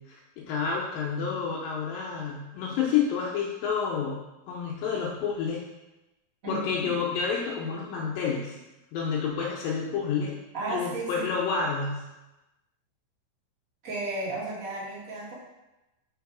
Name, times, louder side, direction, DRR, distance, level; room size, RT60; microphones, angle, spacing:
voice 1, 0.1-4.2 4.5-5.6 6.5-8.5 8.9-10.4 10.7-12.0, left 6 dB, 80° left, -3 dB, 2.4 m, -29 dB
voice 2, 6.4-6.9 10.5-11.3 13.8-15.3, right 2 dB, 45° right, -8 dB, 1.0 m, -34 dB
4.7 x 4.4 x 4.7 m, 0.99 s
omnidirectional pair, 4.2 m